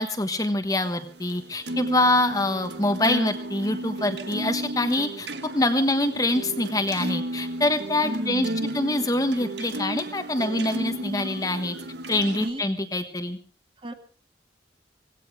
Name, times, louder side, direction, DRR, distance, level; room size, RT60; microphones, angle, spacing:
voice 1, 0.0-5.3 5.5-8.5 8.7-11.7 12.1-13.4, left 2 dB, 20° left, 7 dB, 1.3 m, -25 dB
sound 1, 0.8-12.5, right 1 dB, 80° right, 1.5 m, -33 dB
voice 2, 8.0-8.8 12.4-12.6 13.8-13.9, right 1 dB, 30° right, 6 dB, 2.0 m, -34 dB
17.5 x 16.5 x 5.0 m, 0.41 s
head